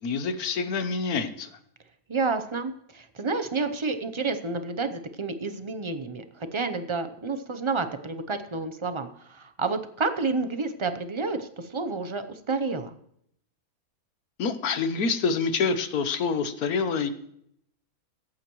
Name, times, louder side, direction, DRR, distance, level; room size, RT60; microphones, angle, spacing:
voice 1, 0.0-1.5 14.4-17.1, left 5 dB, 80° left, 10 dB, 1.4 m, -27 dB
voice 2, 2.1-12.9, right 4 dB, 35° right, 9 dB, 0.5 m, -30 dB
21.5 x 8.8 x 3.1 m, 0.71 s
omnidirectional pair, 1.6 m